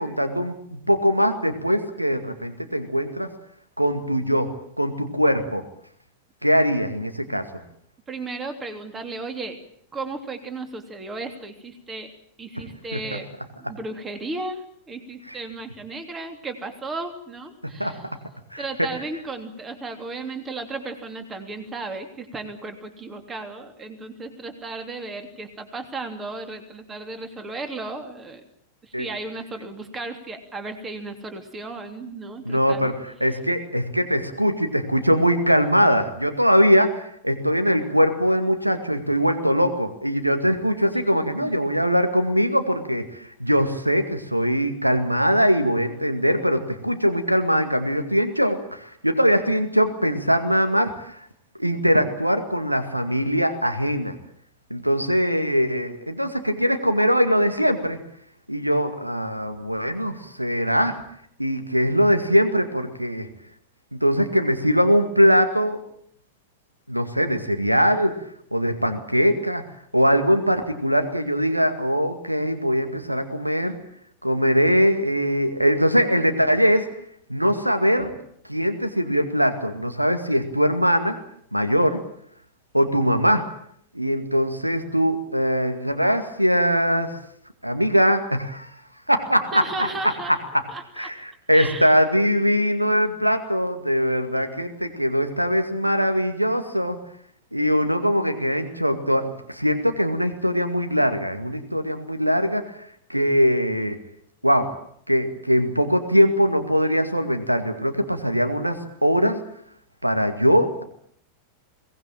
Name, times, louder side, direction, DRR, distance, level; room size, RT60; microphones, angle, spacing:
voice 1, 0.0-3.3 3.8-4.5 4.8-5.6 6.4-7.4 12.9-13.0 15.3-15.4 17.8-17.9 18.5-18.6 28.9-29.1 32.5-51.3 51.6-54.1 54.7-58.0 58.5-61.0 61.4-63.3 63.9-65.8 66.9-68.1 68.5-69.6 69.9-73.8 74.2-76.9 77.3-78.1 78.5-81.1 81.5-82.0 82.7-83.5 83.9-87.1 87.6-88.7 89.1-90.1 91.0-97.0 97.5-102.7 103.1-104.0 104.4-104.7 105.1-109.4 110.0-110.8, equal, 90° right, 8 dB, 2.1 m, -21 dB
voice 2, 8.1-9.6 9.9-12.1 12.4-13.3 13.6-18.0 18.6-28.4 28.8-32.9 41.4-41.5 89.5-90.4 90.7-91.1 91.5-91.9, right 3 dB, 20° right, 7 dB, 3.2 m, -35 dB
22.5 x 19.0 x 9.0 m, 0.67 s
figure-of-eight pair, 90°, 0 cm